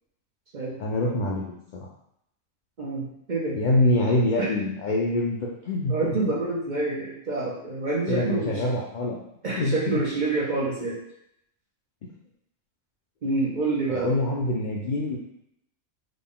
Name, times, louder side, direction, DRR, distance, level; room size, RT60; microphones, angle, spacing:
voice 1, 0.8-1.9 3.5-5.9 8.1-9.2 9.5-10.0 13.9-15.2, left 1 dB, 75° left, -2 dB, 0.4 m, -25 dB
voice 2, 2.8-3.6 4.4-4.5 5.9-8.6 9.4-11.0 13.2-14.1, right 3 dB, 45° right, -4 dB, 0.7 m, -27 dB
3.8 x 2.2 x 3.6 m, 0.76 s
omnidirectional pair, 1.4 m